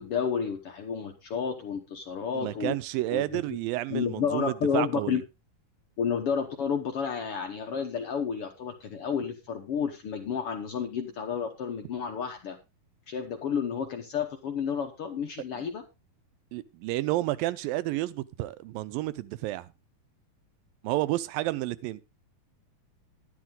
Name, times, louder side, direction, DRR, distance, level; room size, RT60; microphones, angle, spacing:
voice 1, 0.0-2.7 3.1-3.4 3.9-5.2 6.0-12.6 13.1-15.8, left 7 dB, 70° left, 1.3 m, -31 dB
voice 2, 2.4-5.2 15.6-15.7 16.5-19.7 20.8-22.1, right 17 dB, 80° right, 2.4 m, -31 dB
11.5 x 11.0 x 3.7 m
omnidirectional pair, 4.2 m